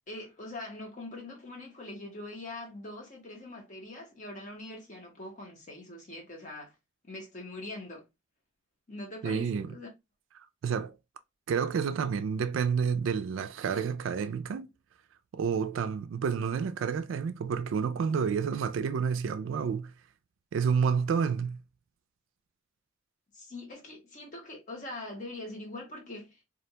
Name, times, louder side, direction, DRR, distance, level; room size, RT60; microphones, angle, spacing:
voice 1, 0.1-6.7 7.0-8.1 8.9-9.9 23.3-26.4, left 2 dB, 40° left, 0.8 m, -43 dB
voice 2, 9.2-9.7 10.6-11.0 11.5-14.7 15.3-19.9 20.5-21.6, right 6 dB, 70° right, 0.3 m, -29 dB
2.4 x 2.1 x 2.7 m
head